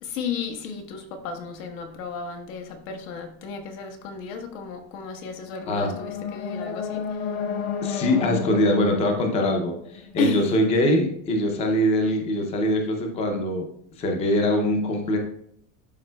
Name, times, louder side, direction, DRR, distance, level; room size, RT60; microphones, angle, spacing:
voice 1, 0.0-7.0 10.2-10.4, left 4 dB, 75° left, 4 dB, 1.3 m, -33 dB
sound 1, 5.4-10.5, left 6 dB, 50° left, 0.7 m, -32 dB
voice 2, 7.8-13.7 14.0-15.2, left 1 dB, 15° left, 3 dB, 0.5 m, -23 dB
12.0 x 4.2 x 2.2 m, 0.68 s
supercardioid pair, 175°, 41 cm